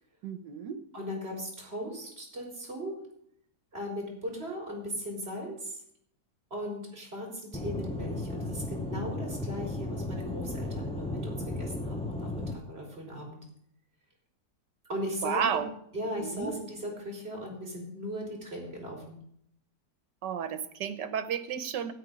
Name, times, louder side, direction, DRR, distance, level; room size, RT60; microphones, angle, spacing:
voice 1, 0.2-0.8 15.2-15.7 16.2-16.5 20.2-21.9, right 8 dB, 80° right, 11 dB, 1.6 m, -32 dB
voice 2, 0.9-3.0 3.7-5.8 6.5-13.4 14.9-15.6 15.9-19.2, equal, 35° right, -1 dB, 4.2 m, -38 dB
Aircraft / Engine, 7.5-12.5, left 2 dB, 5° left, 0.5 m, -35 dB
12.5 x 9.4 x 5.2 m, 0.70 s
omnidirectional pair, 1.9 m